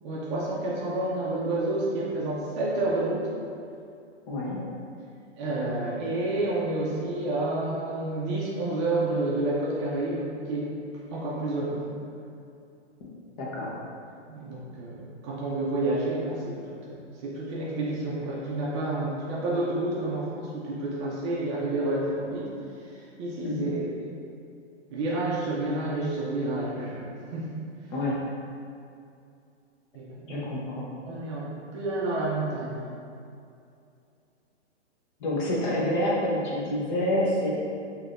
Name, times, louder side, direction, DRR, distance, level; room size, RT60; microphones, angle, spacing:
voice 1, 0.0-3.3 5.4-10.7 11.1-11.8 14.3-22.5 22.8-24.2 24.9-27.0 27.3-27.5 29.9-30.5 31.0-32.8, right 2 dB, 25° right, -6 dB, 0.5 m, -29 dB
voice 2, 4.3-4.6 13.4-13.8 23.4-23.7 27.9-28.2 30.3-30.9 35.2-37.5, left 1 dB, 40° left, -5 dB, 1.0 m, -27 dB
4.7 x 2.8 x 2.5 m, 2.5 s
hypercardioid pair, 135°, 35 cm